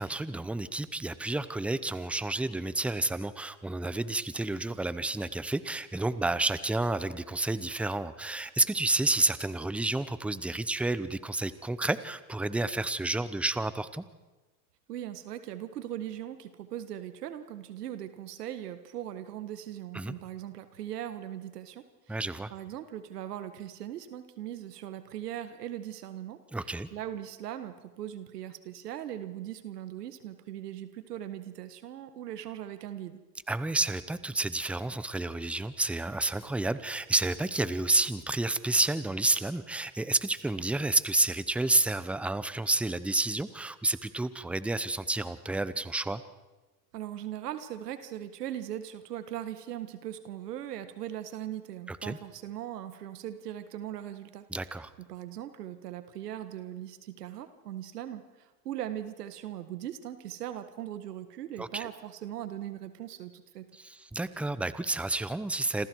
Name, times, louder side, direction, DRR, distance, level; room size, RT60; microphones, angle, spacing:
voice 1, 0.0-14.0 19.9-20.1 22.1-22.5 26.5-26.9 33.5-46.2 51.9-52.2 54.5-54.9 61.6-61.9 63.7-65.9, right 2 dB, 5° right, 14 dB, 0.8 m, -30 dB
voice 2, 14.9-22.2 22.5-26.4 26.9-33.2 46.9-54.4 55.0-63.7, right 11 dB, 90° right, 10 dB, 1.8 m, -39 dB
28.5 x 27.0 x 4.7 m, 1.2 s
supercardioid pair, 120°, 46 cm